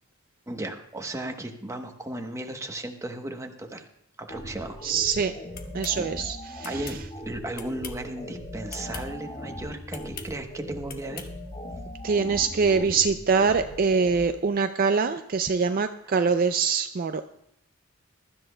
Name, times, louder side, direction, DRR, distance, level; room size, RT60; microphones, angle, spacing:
voice 1, 0.5-3.9 4.2-4.8 5.9-6.1 6.6-7.0 7.2-11.3, right 1 dB, 15° right, 4 dB, 1.0 m, -35 dB
sound 1, 4.3-14.3, equal, 30° left, 1.3 m, -39 dB
voice 2, 4.8-5.3 5.7-6.8 12.0-17.2, right 5 dB, 45° right, 8 dB, 0.4 m, -24 dB
sound 2, 5.5-6.0 6.6-7.0 7.5-8.1 8.7-9.1 9.9-10.3 10.9-11.3, left 7 dB, 45° left, 1.2 m, -41 dB
22.0 x 13.0 x 2.2 m, 0.77 s
head